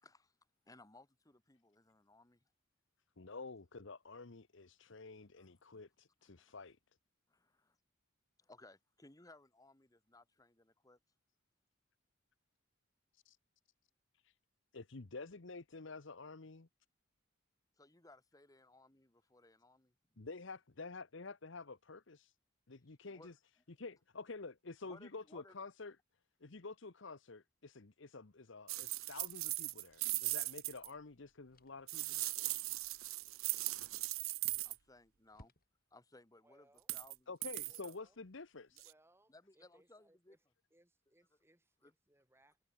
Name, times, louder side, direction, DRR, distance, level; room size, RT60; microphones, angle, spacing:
voice 1, 0.0-0.3 0.7-2.4 4.8-5.0 5.4-5.8 6.2-6.5 7.3-7.8 8.4-11.0 17.8-19.9 23.1-23.3 24.8-25.6 34.6-35.5 35.9-37.6 37.8-37.9 38.7-38.8 39.3-40.4 41.8-41.9, left 2 dB, 15° left, 1.4 m, -62 dB
voice 2, 3.2-6.8 13.1-13.4 14.1-14.4 14.7-16.7 20.2-22.3 22.7-23.3 23.8-26.0 26.4-32.2 37.3-38.9, left 3 dB, 65° left, 1.0 m, -50 dB
sound 1, 28.7-30.9 31.9-34.8 36.8-37.2 37.4-37.9 38.8-38.9, right 20 dB, 85° right, 0.8 m, -39 dB
sound 2, 31.5-32.0 34.1-34.5 34.8-34.9 35.3-36.1, left 1 dB, 45° left, 5.4 m, -64 dB
voice 3, 36.4-36.9 37.6-38.2 38.8-40.4 40.7-42.6, right 1 dB, 10° right, 5.1 m, -70 dB
head